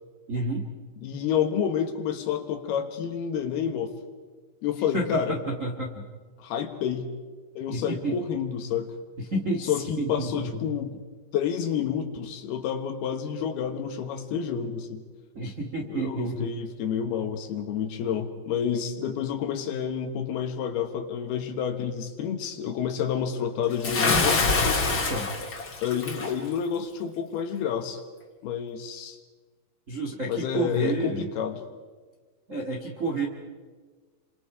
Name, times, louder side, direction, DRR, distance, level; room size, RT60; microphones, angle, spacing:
voice 1, 0.3-0.7 4.9-6.1 7.7-8.2 9.2-10.6 15.3-16.5 24.9-25.3 29.9-31.3 32.5-33.3, right 2 dB, 85° right, 1 dB, 0.7 m, -30 dB
voice 2, 1.0-3.9 4.6-5.4 6.4-7.1 7.6-8.9 9.7-10.9 11.3-15.0 15.9-24.5 25.8-28.0 28.4-29.2 30.3-31.5, left 8 dB, 70° left, 7 dB, 3.0 m, -29 dB
Bathtub (filling or washing) / Splash splatter, 23.8-26.3, left 3 dB, 35° left, 2.2 m, -25 dB
29.5 x 25.5 x 4.9 m, 1.4 s
omnidirectional pair, 5.2 m